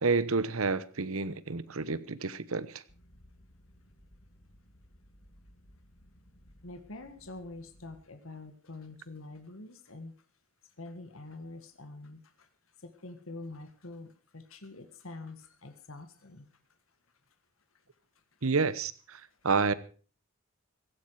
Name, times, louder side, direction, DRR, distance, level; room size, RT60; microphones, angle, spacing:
voice 1, 0.0-2.8 18.4-19.7, right 4 dB, 80° right, 1.0 m, -29 dB
sound 1, 2.9-8.0, equal, 50° left, 2.8 m, -59 dB
voice 2, 6.6-10.1 10.8-12.5 12.8-16.5, left 2 dB, 75° left, 1.7 m, -46 dB
16.5 x 14.0 x 4.8 m
head